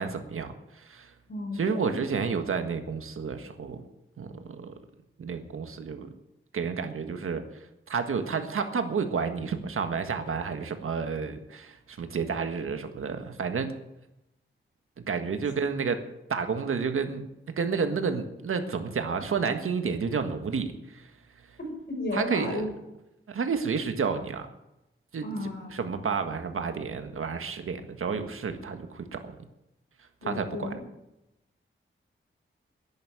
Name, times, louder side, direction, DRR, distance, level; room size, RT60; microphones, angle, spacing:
voice 1, 0.0-1.1 1.5-3.8 4.2-4.8 5.2-6.1 6.5-7.4 7.9-13.7 15.1-17.3 17.6-21.1 22.1-22.6 23.3-24.5 25.1-25.3 25.7-29.4 30.2-30.7, right 5 dB, 85° right, 7 dB, 1.6 m, -30 dB
voice 2, 1.3-2.0 21.9-22.7 25.2-25.7 30.2-30.8, left 2 dB, 55° left, 1 dB, 5.9 m, -33 dB
11.0 x 10.5 x 9.1 m, 0.89 s
wide cardioid pair, 105°, 21 cm